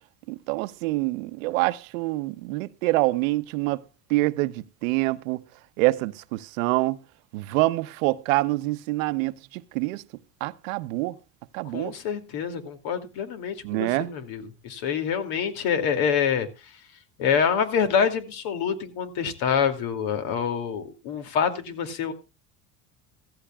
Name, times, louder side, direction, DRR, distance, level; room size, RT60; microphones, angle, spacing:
voice 1, 0.3-3.8 4.1-5.4 5.8-7.0 7.3-10.0 10.4-11.2 11.5-11.9 13.6-14.1, right 20 dB, 85° right, 0.8 m, -26 dB
voice 2, 11.7-16.5 17.2-22.1, left 7 dB, 70° left, 2.6 m, -26 dB
15.0 x 15.0 x 2.3 m
supercardioid pair, 105°, 38 cm